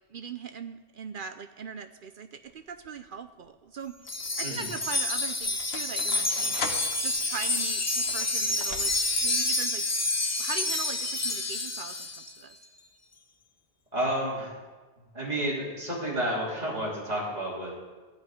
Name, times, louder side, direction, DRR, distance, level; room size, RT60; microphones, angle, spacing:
voice 1, 0.1-4.0 4.4-6.7 7.0-8.9 9.2-9.9 10.4-12.6, right 6 dB, 60° right, 8 dB, 0.7 m, -40 dB
sound 1, 2.5-3.0 3.8-9.3, left 5 dB, 65° left, 1.1 m, -42 dB
Wind chime, 4.1-12.3, left 2 dB, 20° left, 0.6 m, -28 dB
voice 2, 13.9-14.6 15.1-17.7, right 1 dB, 35° right, -5 dB, 3.3 m, -30 dB
14.0 x 5.3 x 9.2 m, 1.3 s
omnidirectional pair, 1.2 m